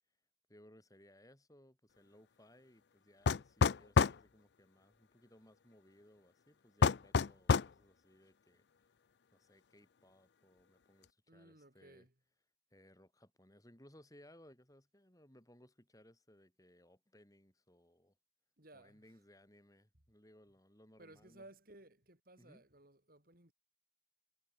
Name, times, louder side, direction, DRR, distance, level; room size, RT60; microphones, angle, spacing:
voice 1, 0.5-8.6 9.3-12.1 12.7-18.1 18.7-21.5 22.4-22.6, left 1 dB, 20° left, 8.0 m, -64 dB
sound 1, 3.3-4.2 6.8-7.7, left 5 dB, 65° left, 0.5 m, -28 dB
voice 2, 11.3-12.1 18.6-19.2 21.0-23.5, right 1 dB, 50° right, 4.4 m, -59 dB
head